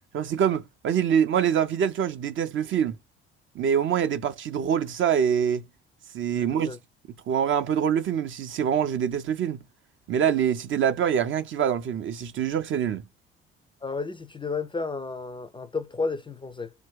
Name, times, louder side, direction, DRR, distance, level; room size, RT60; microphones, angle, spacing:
voice 1, 0.1-3.0 3.6-5.7 6.1-6.8 7.3-9.6 10.1-13.0, right 8 dB, 40° right, 0.5 m, -25 dB
voice 2, 6.4-6.8 13.8-16.7, left 4 dB, 15° left, 0.5 m, -32 dB
2.8 x 2.2 x 3.6 m
figure-of-eight pair, 50°, 32 cm